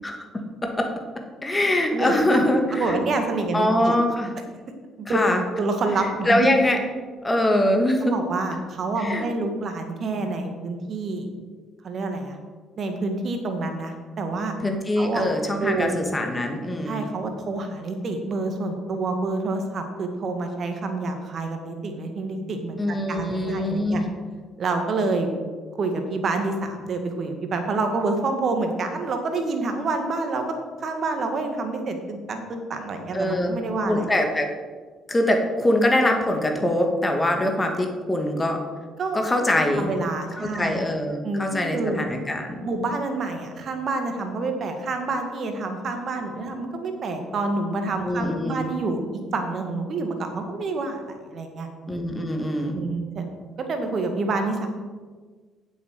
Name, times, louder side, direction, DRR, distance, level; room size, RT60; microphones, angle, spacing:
voice 1, 0.0-0.9 1.4-3.0 3.5-4.3 5.1-5.4 6.3-6.8 7.2-8.2 9.0-9.3 14.6-17.0 22.8-24.1 33.1-33.6 33.8-34.5 35.1-38.6 39.1-39.9 40.4-42.6 48.0-48.6 51.9-52.8, left 1 dB, 20° left, 3 dB, 2.0 m, -23 dB
voice 2, 2.7-4.0 5.0-5.2 5.6-6.5 8.0-11.3 11.8-12.4 12.8-14.5 15.0-15.3 15.6-16.0 16.9-24.0 24.6-25.3 25.8-30.4 30.8-34.1 39.0-39.2 39.5-40.9 41.2-42.0 42.6-49.0 49.3-51.7 52.7-53.3 53.7-54.7, right 3 dB, 50° right, 5 dB, 1.9 m, -28 dB
8.0 x 7.3 x 6.7 m, 1.4 s
figure-of-eight pair, 50°, 0 cm